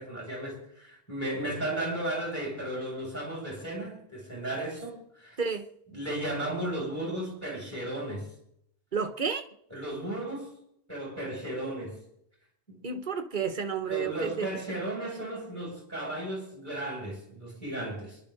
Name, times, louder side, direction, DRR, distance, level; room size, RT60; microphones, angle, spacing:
voice 1, 0.0-5.4 5.9-8.3 9.7-10.5 10.9-12.0 12.7-12.8 13.8-18.2, right 1 dB, 15° left, 7.3 m, -35 dB
voice 2, 8.9-9.4 12.8-14.5, right 6 dB, 50° right, 1.3 m, -31 dB
28.0 x 11.5 x 4.0 m
omnidirectional pair, 1.1 m